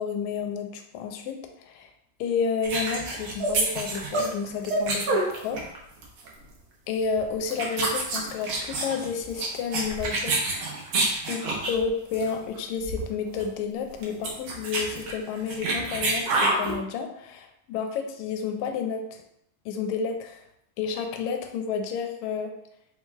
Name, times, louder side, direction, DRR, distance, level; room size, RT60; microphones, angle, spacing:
voice 1, 0.0-1.9 2.2-5.6 6.9-10.8 11.3-19.2 19.7-20.4 20.8-22.5, left 6 dB, 80° left, 4 dB, 1.9 m, -31 dB
sound 1, 2.6-5.8 6.0-6.3 7.0-7.2 7.5-11.8 12.1-12.3 12.6-12.7 12.8-13.1 13.4-13.5 13.9-16.7, right 2 dB, 75° right, 1.2 m, -27 dB
4.6 x 4.4 x 2.2 m, 0.76 s
omnidirectional pair, 3.3 m